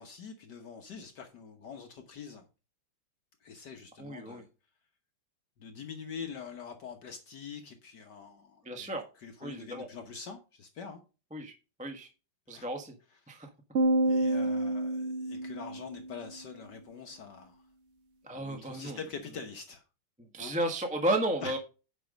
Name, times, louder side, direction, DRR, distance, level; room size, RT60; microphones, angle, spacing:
voice 1, 0.0-2.5 3.4-4.5 5.6-11.0 12.5-12.7 14.0-17.6 18.3-19.8 20.4-20.5 21.4-21.6, left 6 dB, 60° left, 6 dB, 1.6 m, -44 dB
voice 2, 4.0-4.4 8.6-9.0 9.4-9.9 11.3-11.5 11.8-12.1 12.5-12.9 13.3-13.5 18.2-19.0 20.3-21.6, right 1 dB, 5° right, 4 dB, 0.9 m, -33 dB
sound 1, 13.8-16.2, right 1 dB, 75° right, 0.6 m, -28 dB
9.3 x 5.5 x 5.1 m, 0.32 s
omnidirectional pair, 2.2 m